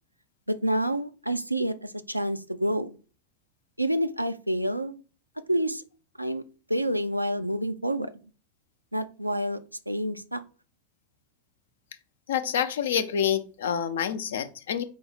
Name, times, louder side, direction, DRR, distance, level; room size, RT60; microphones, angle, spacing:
voice 1, 0.5-3.0 3.8-5.0 5.5-5.8 6.2-6.4 6.7-8.1 8.9-9.6 9.9-10.4, right 1 dB, 90° right, 10 dB, 0.3 m, -28 dB
voice 2, 12.3-14.8, left 8 dB, 60° left, 11 dB, 0.4 m, -27 dB
4.9 x 2.0 x 4.1 m, 0.37 s
figure-of-eight pair, 90°, 0 cm